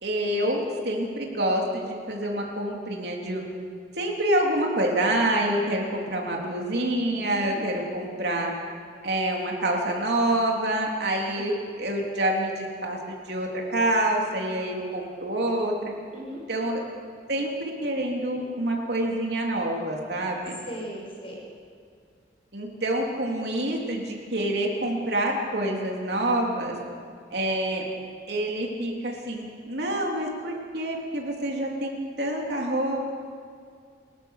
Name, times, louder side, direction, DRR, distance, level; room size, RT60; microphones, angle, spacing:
voice 1, 0.0-3.4 4.0-8.5 9.0-15.9 16.5-16.8 17.3-20.6 22.5-26.8 27.3-27.9 28.3-33.0, right 1 dB, 65° right, -1 dB, 3.6 m, -27 dB
voice 2, 7.3-7.6 11.3-11.5 16.1-16.4 20.7-21.4, equal, 30° left, -2 dB, 6.1 m, -38 dB
29.0 x 14.0 x 6.8 m, 2.2 s
head